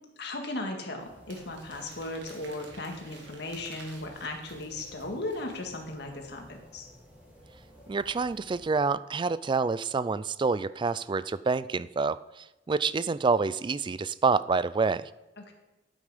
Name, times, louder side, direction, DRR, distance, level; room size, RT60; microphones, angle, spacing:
voice 1, 0.2-6.4 6.7-6.9 15.4-15.5, left 2 dB, 65° left, 3 dB, 1.9 m, -36 dB
sound 1, 1.0-8.7, equal, 10° right, 3.2 m, -54 dB
Crumpling crinkling, 1.3-5.9, right 4 dB, 80° right, 2.3 m, -53 dB
voice 2, 7.9-15.1, right 4 dB, 25° right, 16 dB, 0.3 m, -27 dB
11.5 x 8.9 x 5.0 m, 0.99 s
head